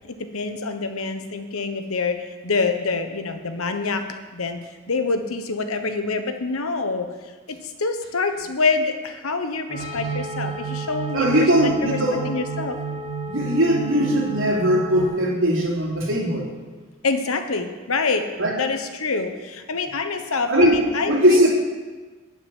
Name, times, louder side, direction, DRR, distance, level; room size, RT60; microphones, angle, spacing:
voice 1, 0.1-4.0 4.3-4.6 4.9-7.1 7.8-11.3 11.6-12.0 12.2-12.8 17.0-18.2 18.6-21.5, left 4 dB, 90° left, 7 dB, 1.1 m, -26 dB
sound 1, 9.7-15.1, right 5 dB, 30° right, 2.9 m, -31 dB
voice 2, 11.1-12.3 13.3-16.5 18.4-18.6 20.5-21.5, equal, 65° right, -3 dB, 3.1 m, -20 dB
11.5 x 5.9 x 9.0 m, 1.3 s
head